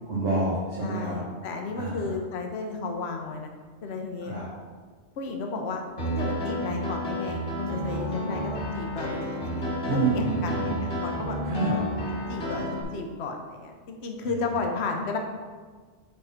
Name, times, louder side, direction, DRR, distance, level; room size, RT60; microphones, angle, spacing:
voice 1, 0.1-1.1 1.7-2.1 4.2-4.4 9.8-10.7 11.4-11.8, right 2 dB, 85° right, -9 dB, 1.7 m, -27 dB
voice 2, 0.8-3.5 3.8-4.3 5.2-9.8 10.1-11.4 12.1-15.2, left 3 dB, 70° left, 3 dB, 1.0 m, -33 dB
Piano, 6.0-12.8, equal, 50° left, 1.5 m, -31 dB
7.9 x 3.7 x 4.3 m, 1.5 s
omnidirectional pair, 1.2 m